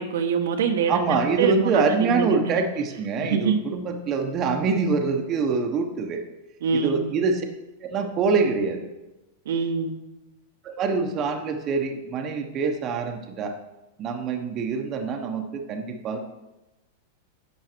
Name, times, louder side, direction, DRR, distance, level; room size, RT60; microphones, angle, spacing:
voice 1, 0.0-2.6 3.2-3.6 6.6-7.1 9.4-10.0, right 6 dB, 80° right, 5 dB, 1.2 m, -25 dB
voice 2, 0.9-6.2 6.7-7.4 7.8-8.8 10.6-13.5 14.0-16.2, right 4 dB, 30° right, 4 dB, 1.0 m, -25 dB
11.0 x 7.3 x 4.5 m, 1.0 s
supercardioid pair, 155°, 0 cm